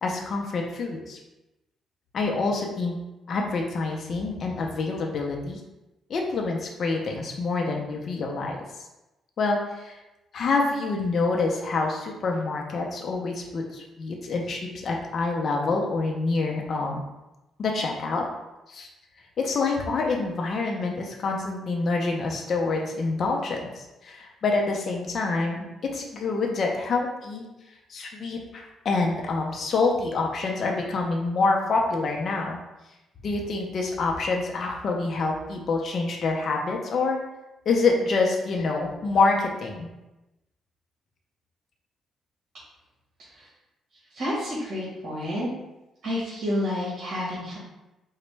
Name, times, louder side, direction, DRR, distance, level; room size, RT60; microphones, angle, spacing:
voice 1, 0.0-1.2 2.1-3.0 3.3-5.6 6.1-8.9 9.4-10.0 10.3-17.0 17.6-18.2 18.7-18.9 19.4-27.4 27.9-32.6 33.2-37.2 37.7-39.9, left 3 dB, 55° left, 0 dB, 0.5 m, -26 dB
voice 2, 44.1-45.5 46.0-47.6, left 1 dB, 60° right, -8 dB, 1.3 m, -29 dB
3.9 x 2.1 x 3.3 m, 0.99 s
cardioid pair, 90°, 0 cm